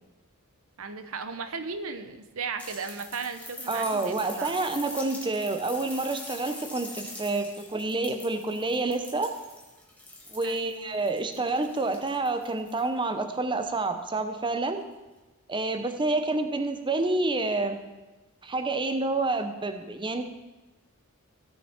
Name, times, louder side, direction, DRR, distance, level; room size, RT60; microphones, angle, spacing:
voice 1, 0.8-4.6 10.4-10.7, right 5 dB, 70° right, 8 dB, 0.8 m, -36 dB
sound 1, 2.6-13.0 14.4-14.5, left 2 dB, 5° left, 1.7 m, -44 dB
voice 2, 3.7-9.3 10.3-14.8 15.5-17.8 18.4-20.2, right 2 dB, 20° right, 7 dB, 0.8 m, -28 dB
15.5 x 6.8 x 4.4 m, 1.1 s
head